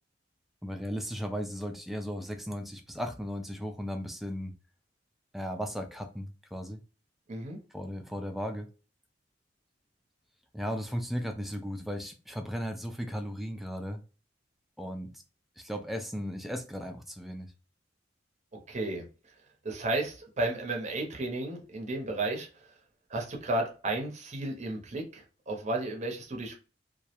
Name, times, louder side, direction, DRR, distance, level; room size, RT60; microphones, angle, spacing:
voice 1, 0.6-4.5 5.3-6.8 7.7-8.7 10.5-14.0 14.8-15.1 15.6-17.5, equal, ahead, 0.3 m, -36 dB
voice 2, 7.3-7.6 18.5-19.3 19.6-22.7 23.1-26.6, right 2 dB, 40° right, 0.6 m, -33 dB
2.3 x 2.0 x 2.8 m
head